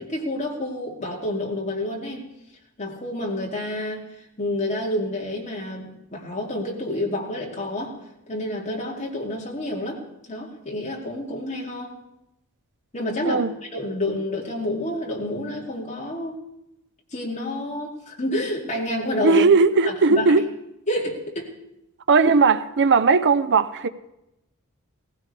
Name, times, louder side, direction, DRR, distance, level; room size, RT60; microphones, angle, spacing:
voice 1, 0.0-2.3 2.8-4.1 4.4-8.0 8.3-10.0 10.3-12.0 12.9-13.4 13.7-16.4 17.1-19.4 19.8-20.2 20.9-21.5, left 1 dB, 35° left, 2.7 m, -29 dB
voice 2, 19.2-20.5 22.1-23.9, right 4 dB, 55° right, 0.6 m, -18 dB
18.0 x 15.5 x 3.4 m
head